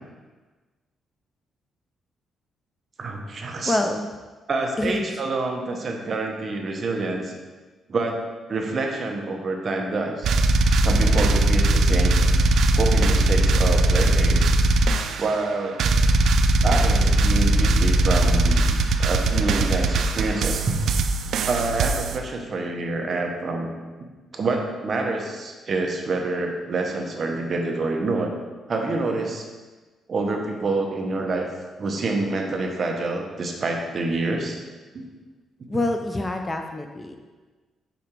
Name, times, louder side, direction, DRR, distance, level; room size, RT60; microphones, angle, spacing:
voice 1, 3.0-3.8 4.5-7.3 7.9-8.2 8.5-10.3 10.8-12.2 12.7-14.6 15.2-15.8 16.6-18.7 19.0-20.6 21.4-23.7 24.3-28.3 28.7-29.5 30.1-31.5 31.8-34.6 34.9-35.1, right 3 dB, 35° right, 2 dB, 0.8 m, -27 dB
voice 2, 3.6-4.1 4.8-5.1 35.7-37.2, left 2 dB, 20° left, 5 dB, 0.4 m, -26 dB
sound 1, 10.2-15.5 15.8-22.2, right 2 dB, 65° right, 0.4 m, -20 dB
5.1 x 4.8 x 4.4 m, 1.3 s
cardioid pair, 135°, 0 cm